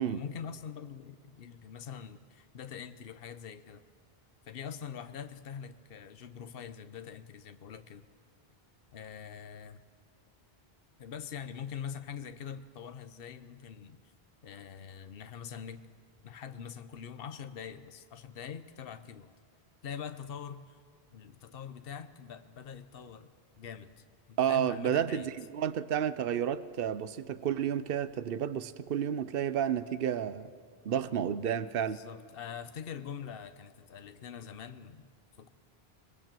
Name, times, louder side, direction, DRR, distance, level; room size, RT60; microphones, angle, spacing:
voice 1, 0.0-3.8 4.5-8.1 8.9-9.8 11.0-14.0 14.4-15.8 16.2-19.3 19.8-20.8 21.1-25.3 31.1-31.2 31.8-35.1 35.4-35.5, left 7 dB, 65° left, 10 dB, 1.1 m, -44 dB
voice 2, 24.4-30.5 30.8-32.0, right 9 dB, 65° right, 14 dB, 1.0 m, -31 dB
26.5 x 21.0 x 7.6 m, 2.1 s
omnidirectional pair, 1.0 m